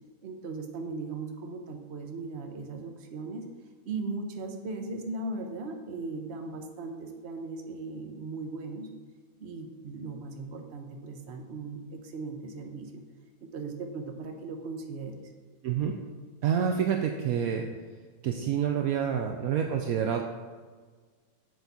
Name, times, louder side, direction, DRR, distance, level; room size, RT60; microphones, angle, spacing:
voice 1, 0.2-3.4 3.8-8.9 9.4-13.0 13.5-15.2, right 3 dB, 50° right, 4 dB, 1.1 m, -38 dB
voice 2, 15.6-16.0 16.4-17.7 18.2-20.2, right 8 dB, 70° right, 3 dB, 1.0 m, -28 dB
8.0 x 7.0 x 4.1 m, 1.5 s
omnidirectional pair, 1.7 m